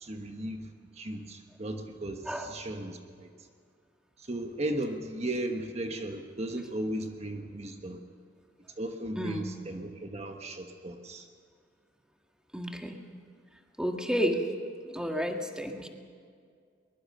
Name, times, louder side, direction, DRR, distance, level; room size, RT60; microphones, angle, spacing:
voice 1, 0.0-3.3 4.2-8.0 8.8-11.3, right 1 dB, 40° right, 5 dB, 1.3 m, -36 dB
voice 2, 9.2-9.5 12.5-13.0 13.8-14.4 14.9-15.9, equal, 5° right, 3 dB, 1.7 m, -31 dB
22.5 x 21.5 x 6.7 m, 2.2 s
head